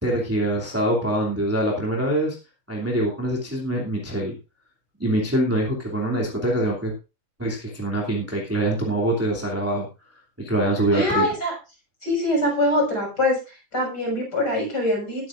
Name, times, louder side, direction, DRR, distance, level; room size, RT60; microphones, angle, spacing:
voice 1, 0.0-2.4 2.7-4.3 5.0-6.9 7.4-9.9 10.4-11.3, right 1 dB, 5° right, -3 dB, 1.5 m, -24 dB
voice 2, 10.9-11.5 12.0-13.4 13.7-15.3, left 1 dB, 25° left, 0 dB, 6.8 m, -23 dB
20.0 x 8.8 x 2.5 m, 0.29 s
omnidirectional pair, 4.5 m